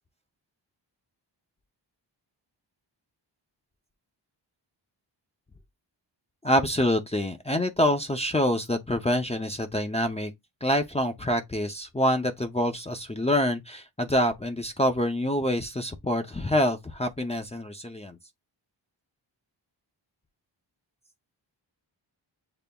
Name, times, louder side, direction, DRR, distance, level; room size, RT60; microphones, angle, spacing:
voice 1, 6.4-10.3 10.6-18.2, equal, 15° left, 0.5 m, -26 dB
6.9 x 3.4 x 2.2 m
wide cardioid pair, 120°, 45 cm